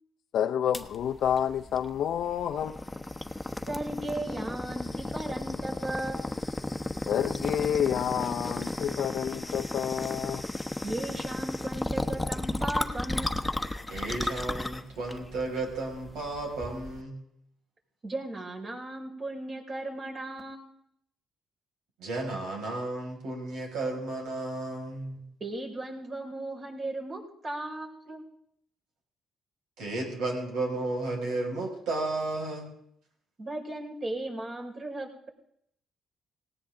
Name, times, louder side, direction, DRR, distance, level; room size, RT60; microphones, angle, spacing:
voice 1, 0.3-2.9 7.1-10.4, left 9 dB, 70° left, 0.6 m, -29 dB
sound 1, 0.7-17.0, left 2 dB, 10° left, 1.2 m, -34 dB
voice 2, 3.7-6.3 10.8-13.6 18.0-20.8 25.4-28.2 33.4-35.3, right 1 dB, 40° right, 5.5 m, -36 dB
voice 3, 13.9-17.1 22.0-25.2 29.8-32.7, right 2 dB, 85° right, 6.2 m, -33 dB
18.5 x 18.0 x 3.9 m
cardioid pair, 90°, 0 cm